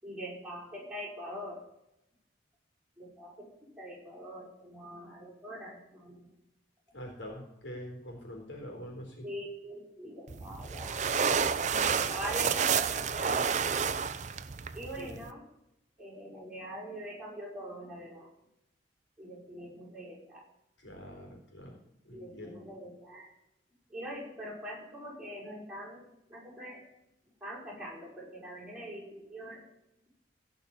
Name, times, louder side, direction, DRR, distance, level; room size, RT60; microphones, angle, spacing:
voice 1, 0.0-1.6 3.0-6.3 9.2-11.0 11.7-13.9 14.7-15.4 16.0-18.3 19.2-20.5 22.1-23.3 23.9-26.8 27.4-29.6, equal, 5° right, -6 dB, 5.7 m, -43 dB
voice 2, 6.9-9.3 15.0-15.1 20.8-21.8 22.0-22.7, equal, 70° left, 2 dB, 3.7 m, -44 dB
sound 1, 10.3-15.3, right 6 dB, 40° right, 0.5 m, -30 dB
16.5 x 5.6 x 8.6 m, 0.81 s
head